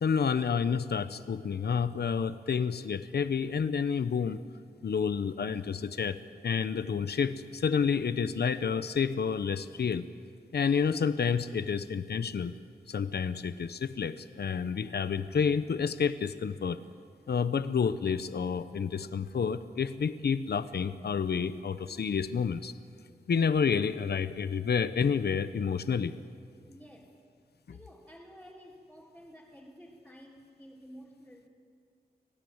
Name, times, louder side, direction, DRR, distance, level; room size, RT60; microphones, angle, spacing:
voice 1, 0.0-4.4 4.8-10.0 10.5-12.5 12.9-16.8 17.3-22.7 23.3-26.1, left 6 dB, 70° left, 12 dB, 0.8 m, -29 dB
voice 2, 26.7-27.2 27.7-31.5, equal, ahead, -6 dB, 3.3 m, -52 dB
25.5 x 17.5 x 8.0 m, 2.2 s
wide cardioid pair, 115°, 17 cm